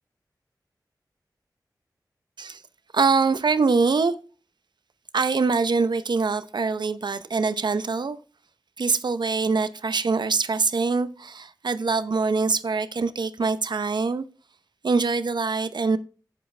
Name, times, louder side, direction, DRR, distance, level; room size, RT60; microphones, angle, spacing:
voice 1, 2.9-4.1 5.1-8.2 8.8-14.3 14.8-16.0, right 4 dB, 80° right, 0.8 m, -24 dB
10.5 x 8.4 x 3.3 m
wide cardioid pair, 70°, 8 cm